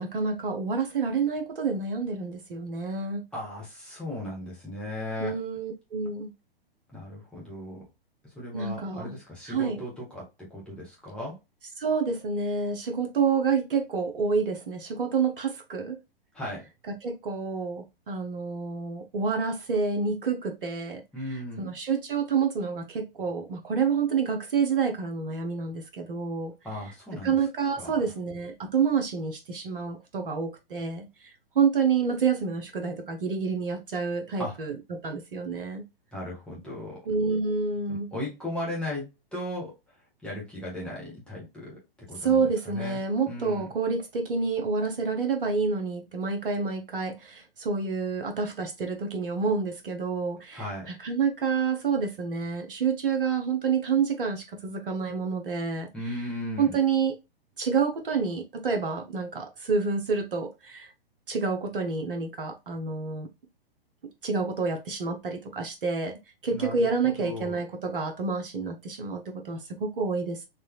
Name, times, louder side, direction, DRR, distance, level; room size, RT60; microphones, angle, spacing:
voice 1, 0.0-3.2 5.2-6.3 8.5-9.2 9.5-9.8 11.8-16.0 16.9-21.0 21.6-26.5 27.2-31.1 31.5-35.9 37.1-38.1 42.2-55.9 56.6-57.2 57.6-60.9 61.3-63.3 64.2-70.5, right 5 dB, 65° right, 0.9 m, -28 dB
voice 2, 3.3-5.4 6.9-7.8 8.3-11.4 16.3-16.6 21.1-21.7 26.6-27.4 27.8-28.0 34.4-34.6 36.1-37.0 37.9-39.0 39.3-39.7 40.2-41.8 42.1-43.0 43.3-43.7 50.5-50.9 55.9-56.8 66.5-67.6, left 1 dB, 5° left, 1.4 m, -36 dB
4.1 x 3.0 x 2.3 m
figure-of-eight pair, 110°, 30 cm